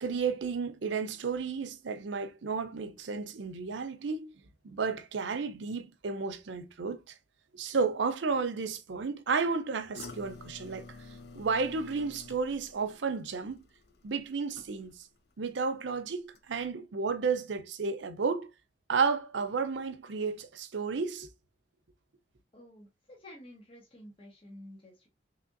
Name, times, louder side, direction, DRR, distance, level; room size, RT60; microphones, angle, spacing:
voice 1, 0.0-4.3 4.6-7.2 7.5-10.8 11.3-13.7 14.0-15.1 15.4-18.5 18.9-21.3, right 5 dB, 90° right, 0.6 m, -32 dB
sound 1, 9.9-15.2 15.5-15.9 16.3-16.4, left 3 dB, 60° left, 0.4 m, -50 dB
voice 2, 22.5-25.1, left 1 dB, 30° left, 0.9 m, -51 dB
3.6 x 3.3 x 2.5 m
head